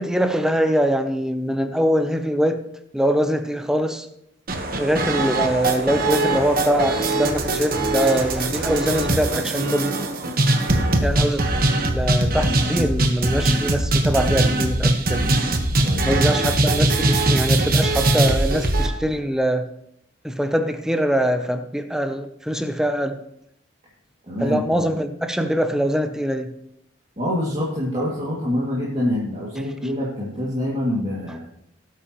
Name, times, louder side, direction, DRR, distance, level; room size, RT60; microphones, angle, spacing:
voice 1, 0.0-2.6 2.9-4.1 4.8-9.9 11.0-11.4 11.8-15.3 16.0-19.7 20.2-23.2 24.4-26.5, equal, 5° right, 8 dB, 0.7 m, -23 dB
sound 1, 4.5-18.9, right 2 dB, 50° right, 1.2 m, -21 dB
voice 2, 15.8-16.4 24.3-24.9 27.2-31.4, left 1 dB, 35° right, -7 dB, 2.4 m, -26 dB
19.0 x 8.4 x 3.1 m, 0.76 s
head